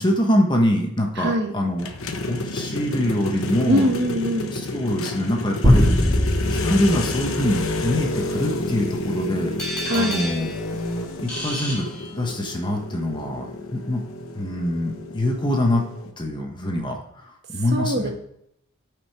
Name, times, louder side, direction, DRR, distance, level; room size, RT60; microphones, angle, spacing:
voice 1, 0.0-1.9 2.3-3.9 4.5-6.2 6.5-9.6 9.9-10.5 11.2-11.9 12.1-14.0 14.3-15.8 16.2-17.0 17.5-18.1, left 1 dB, 20° left, 1 dB, 1.2 m, -24 dB
voice 2, 1.2-1.5 3.7-4.6 9.8-10.2 17.7-18.1, equal, 50° right, 4 dB, 1.2 m, -22 dB
sound 1, 1.8-16.1, left 2 dB, 70° left, 1.0 m, -30 dB
sound 2, 5.6-8.3, left 1 dB, 20° right, 3.0 m, -21 dB
sound 3, 9.6-12.6, left 1 dB, 5° left, 3.0 m, -32 dB
12.5 x 5.0 x 4.8 m, 0.76 s
head